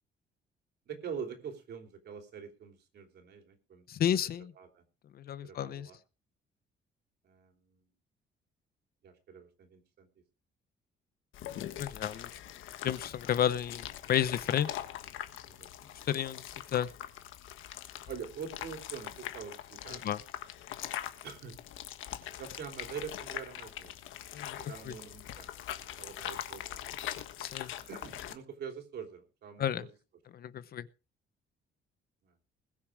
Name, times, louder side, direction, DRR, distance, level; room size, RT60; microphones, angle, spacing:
voice 1, 0.8-3.9 4.1-4.2 4.5-4.8 5.4-6.0 7.2-7.8 9.0-10.1 15.5-16.0 18.1-20.0 21.2-21.6 22.3-23.9 24.5-26.8 27.9-29.9 32.2-32.4, right 6 dB, 55° right, 5 dB, 3.3 m, -45 dB
voice 2, 3.9-4.5 5.2-5.9 11.8-12.3 12.8-14.8 16.1-16.4 16.7-16.9 20.0-20.2 24.3-24.6 27.4-27.7 29.6-29.8 30.3-30.8, left 10 dB, 50° left, 16 dB, 0.8 m, -31 dB
sound 1, 11.3-28.3, left 12 dB, 90° left, 1.4 m, -42 dB
21.0 x 7.2 x 4.9 m, 0.33 s
cardioid pair, 165°, 20 cm